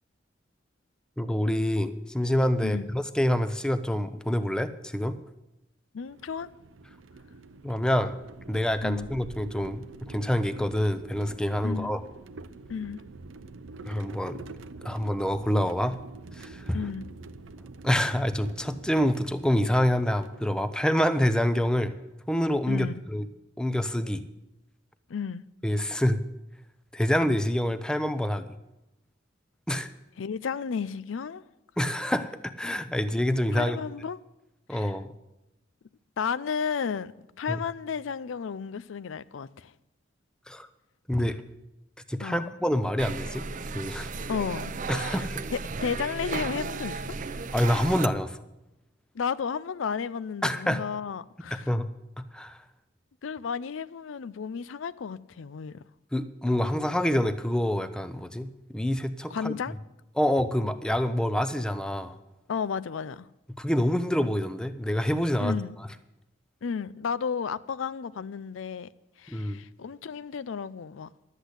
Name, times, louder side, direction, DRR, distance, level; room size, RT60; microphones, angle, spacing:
voice 1, 1.2-5.2 7.6-8.2 8.5-12.0 13.8-14.4 14.8-16.0 16.4-16.8 17.8-22.0 22.3-23.3 23.6-24.2 25.6-26.2 26.9-28.5 29.7-29.9 31.8-33.8 34.7-35.1 37.5-37.6 40.5-40.7 41.1-41.4 42.1-43.5 43.7-44.1 44.9-45.5 47.5-48.4 50.4-50.8 51.7-51.9 52.3-52.6 56.1-59.5 60.2-62.2 63.6-65.6 69.3-69.6, equal, 5° left, 0.6 m, -26 dB
voice 2, 2.6-2.9 5.9-6.5 8.8-9.1 11.6-11.9 12.7-13.0 16.7-17.1 22.7-23.0 25.1-25.4 30.2-31.4 33.5-34.2 34.7-34.9 36.2-37.1 37.4-39.7 42.2-42.5 44.3-45.2 45.5-47.0 49.1-51.7 53.2-55.8 59.3-59.7 62.5-63.3 65.4-65.7 66.6-68.9 69.2-71.1, left 6 dB, 85° left, 0.4 m, -33 dB
sound 1, 6.0-21.0, right 3 dB, 85° right, 0.6 m, -46 dB
sound 2, 43.0-48.1, right 4 dB, 45° right, 0.5 m, -34 dB
12.0 x 8.2 x 8.1 m
head